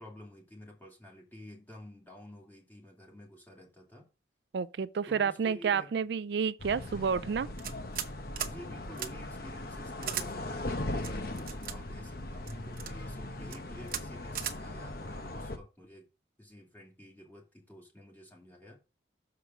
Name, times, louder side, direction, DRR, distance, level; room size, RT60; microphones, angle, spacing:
voice 1, 0.0-4.1 5.0-5.9 8.5-16.0 16.4-18.8, equal, 10° left, 2.4 m, -50 dB
voice 2, 4.5-7.5, right 6 dB, 70° right, 0.4 m, -30 dB
sound 1, 6.6-15.6, left 1 dB, 55° left, 0.9 m, -39 dB
sound 2, 7.6-8.1 8.4-8.5 9.0-9.1 10.0-10.3 11.0-11.7 12.5-12.9 13.4-13.6 13.9-14.0 14.3-14.6, right 9 dB, 50° right, 1.0 m, -36 dB
6.8 x 5.0 x 5.9 m
head